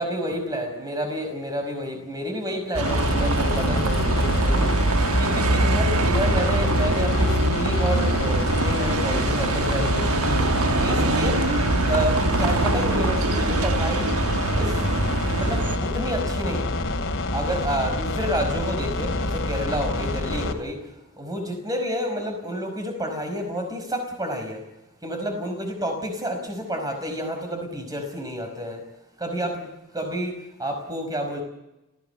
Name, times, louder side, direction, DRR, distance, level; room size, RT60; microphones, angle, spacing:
voice 1, 0.0-4.8 5.2-10.5 10.8-11.4 11.9-14.1 14.5-14.9 15.3-16.7 17.3-20.9 21.2-24.6 25.0-28.8 29.2-29.7 29.9-31.4, equal, 15° right, 5 dB, 5.1 m, -29 dB
Bus, 2.7-15.8, right 2 dB, 75° right, 1.2 m, -23 dB
sound 1, 2.8-20.5, left 2 dB, 60° left, 2.7 m, -27 dB
28.5 x 16.5 x 7.0 m, 0.96 s
head